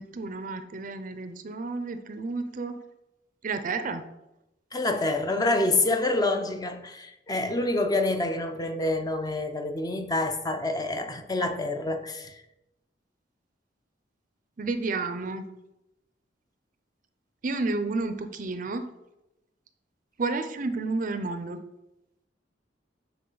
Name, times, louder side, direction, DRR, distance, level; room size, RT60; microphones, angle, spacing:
voice 1, 0.0-2.8 3.4-4.1 14.6-15.5 17.4-18.9 20.2-21.6, right 3 dB, 45° right, 0.5 m, -31 dB
voice 2, 4.7-12.4, left 2 dB, 20° left, 0.6 m, -27 dB
9.3 x 4.0 x 3.9 m
head